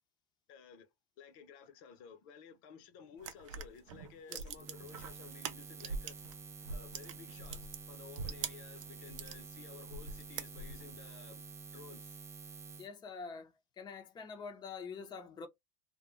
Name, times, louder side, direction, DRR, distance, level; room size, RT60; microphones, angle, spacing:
voice 1, 0.5-0.9 1.2-6.2 6.7-7.6 7.9-11.4 11.7-12.2, left 6 dB, 65° left, 0.8 m, -54 dB
sound 1, 3.2-6.3 6.6-9.4 9.9-11.0, right 5 dB, 80° right, 0.5 m, -43 dB
Buzz, 4.5-12.9, right 5 dB, 15° right, 0.3 m, -50 dB
voice 2, 12.8-15.5, left 5 dB, 25° left, 0.7 m, -46 dB
2.3 x 2.2 x 3.1 m
hypercardioid pair, 95°, 16 cm